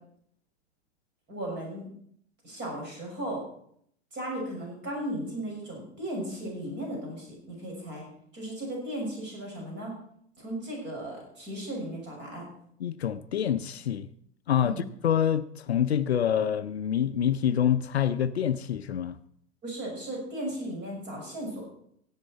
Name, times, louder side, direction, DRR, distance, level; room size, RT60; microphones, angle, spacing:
voice 1, 1.3-1.9 2.4-3.4 4.1-8.0 8.3-9.9 10.4-12.4 14.6-14.8 19.6-21.7, right 1 dB, 35° right, 6.1 m, -36 dB
voice 2, 12.8-14.1 14.5-19.2, left 9 dB, 70° left, 0.6 m, -26 dB
16.5 x 8.4 x 4.4 m
figure-of-eight pair, 90°, 33 cm